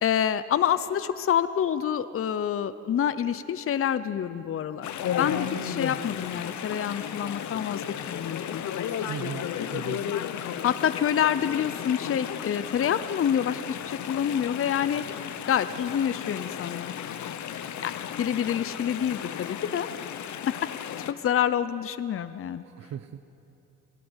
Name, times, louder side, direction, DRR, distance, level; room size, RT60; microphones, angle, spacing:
voice 1, 0.0-4.9 5.2-8.6 10.6-15.0 15.5-16.9 17.8-17.9 18.2-19.9 20.5-20.6 21.1-22.6, left 9 dB, 45° left, 13 dB, 0.8 m, -27 dB
Chatter / Stream, 4.8-21.1, left 9 dB, 70° left, 1.2 m, -34 dB
voice 2, 9.1-9.4 9.7-10.0 22.6-23.2, right 9 dB, 60° right, 11 dB, 0.8 m, -37 dB
27.5 x 17.5 x 8.2 m, 2.9 s
cardioid pair, 90°, 30 cm